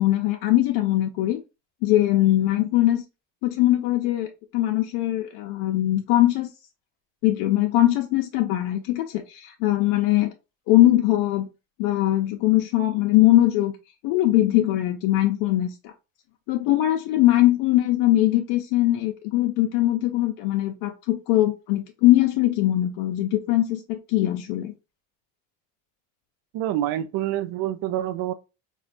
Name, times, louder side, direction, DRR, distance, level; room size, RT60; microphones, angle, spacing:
voice 1, 0.0-1.4 1.8-3.0 3.4-6.5 7.2-10.3 10.7-11.5 11.8-13.7 14.0-15.9 16.5-24.7, left 15 dB, 80° left, 0.6 m, -21 dB
voice 2, 26.5-28.3, right 12 dB, 65° right, 0.5 m, -27 dB
4.1 x 2.2 x 2.5 m
supercardioid pair, 100°, 39 cm